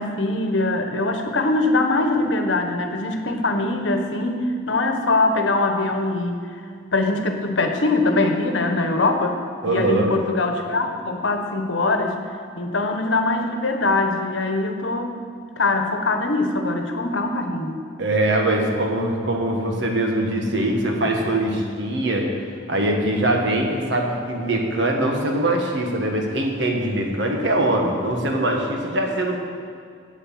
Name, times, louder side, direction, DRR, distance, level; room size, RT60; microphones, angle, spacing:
voice 1, 0.0-6.6 6.9-9.4 9.6-12.2 12.6-15.2 15.6-17.8, left 2 dB, 70° left, 5 dB, 1.1 m, -22 dB
voice 2, 9.6-10.1 18.0-22.2 22.7-29.4, right 1 dB, 65° right, 1 dB, 1.6 m, -22 dB
8.6 x 8.0 x 7.6 m, 2.2 s
head